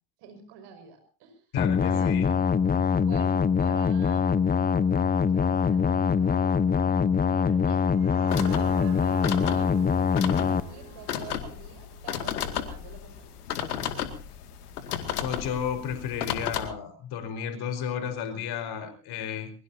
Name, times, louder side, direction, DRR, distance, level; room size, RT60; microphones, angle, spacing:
voice 1, 0.2-1.5 1.9-2.2 2.9-4.3 5.2-6.5 7.3-7.9 8.2-9.7 10.0-13.4, right 7 dB, 60° right, 8 dB, 5.9 m, -47 dB
voice 2, 1.5-2.3 15.2-19.5, left 8 dB, 55° left, 9 dB, 4.7 m, -33 dB
sound 1, 1.6-10.6, left 6 dB, 20° left, 0.9 m, -23 dB
sound 2, 7.6-13.1, right 7 dB, 90° right, 2.0 m, -46 dB
sound 3, 8.3-16.7, left 9 dB, 80° left, 2.2 m, -34 dB
22.5 x 22.0 x 2.8 m, 0.38 s
hypercardioid pair, 70°, 45 cm